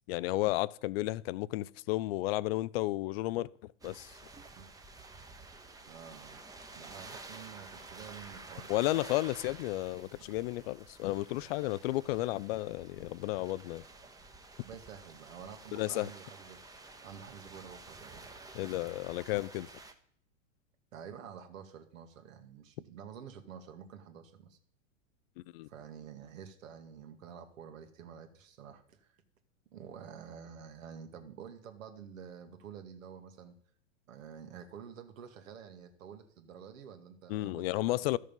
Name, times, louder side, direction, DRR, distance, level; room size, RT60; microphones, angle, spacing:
voice 1, 0.1-3.5 3.8-4.1 8.7-13.8 15.7-16.1 18.5-19.7 25.5-25.7 37.3-38.2, left 18 dB, 50° left, 0.4 m, -33 dB
sound 1, 3.8-19.9, right 3 dB, 10° right, 0.9 m, -51 dB
voice 2, 5.8-6.4 6.7-9.0 10.2-10.4 14.6-16.6 17.0-18.3 20.9-24.6 25.7-29.2 29.7-33.5 34.1-38.2, right 7 dB, 75° right, 1.8 m, -49 dB
12.5 x 6.5 x 5.3 m
hypercardioid pair, 115°, 40 cm